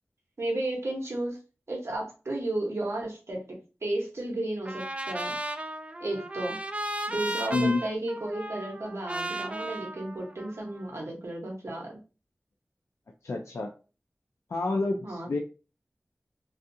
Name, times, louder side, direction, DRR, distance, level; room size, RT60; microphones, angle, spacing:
voice 1, 0.4-1.4 1.7-3.4 3.8-5.3 6.0-6.6 7.1-12.0 15.0-15.4, right 1 dB, 65° right, -1 dB, 1.0 m, -33 dB
Trumpet, 4.7-10.9, right 1 dB, 25° right, 0.3 m, -35 dB
voice 2, 13.2-13.7 14.5-15.4, left 3 dB, 70° left, 1 dB, 0.3 m, -28 dB
2.5 x 2.3 x 2.6 m, 0.33 s
wide cardioid pair, 60°, 5 cm